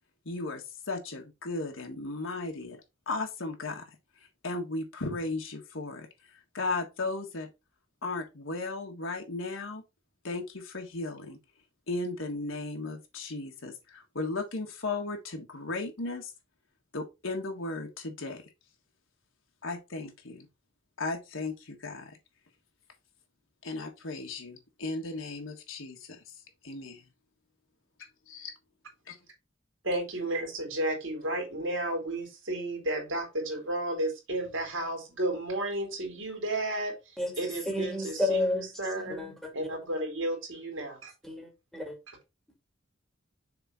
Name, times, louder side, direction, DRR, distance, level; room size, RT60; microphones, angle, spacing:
voice 1, 0.2-2.8 3.1-3.9 4.4-7.5 8.0-9.8 10.2-11.4 11.9-16.3 16.9-18.4 19.6-20.5 21.0-22.2 23.6-26.3 26.6-27.0 28.0-28.5 29.1-29.2, left 3 dB, 85° left, 1.5 m, -36 dB
voice 2, 29.8-41.1, right 1 dB, 80° right, 3.3 m, -33 dB
voice 3, 37.2-38.7 39.1-39.5 41.2-42.0, left 2 dB, ahead, 2.1 m, -31 dB
6.7 x 3.6 x 5.5 m
head